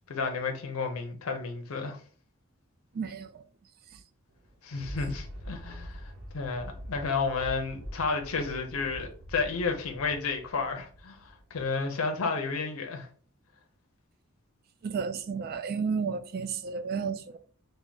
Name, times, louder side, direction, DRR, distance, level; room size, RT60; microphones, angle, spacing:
voice 1, 0.1-2.0 4.6-13.1, left 4 dB, 85° left, 0.5 m, -32 dB
voice 2, 2.9-3.4 3.9-4.0 14.8-17.4, right 5 dB, 45° right, 0.4 m, -32 dB
Thunder, 4.3-11.8 12.3-12.4, equal, 70° right, 0.8 m, -44 dB
3.4 x 2.1 x 3.7 m
head